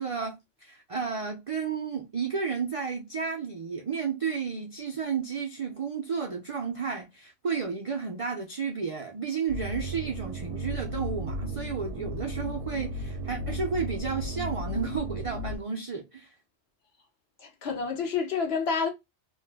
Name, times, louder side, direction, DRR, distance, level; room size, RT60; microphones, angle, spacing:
voice 1, 0.0-16.3, right 5 dB, 55° right, 0.3 m, -32 dB
sound 1, 9.5-15.6, right 1 dB, 80° right, 0.9 m, -35 dB
voice 2, 17.4-18.9, left 5 dB, 65° left, 1.0 m, -29 dB
2.6 x 2.2 x 3.3 m
omnidirectional pair, 1.2 m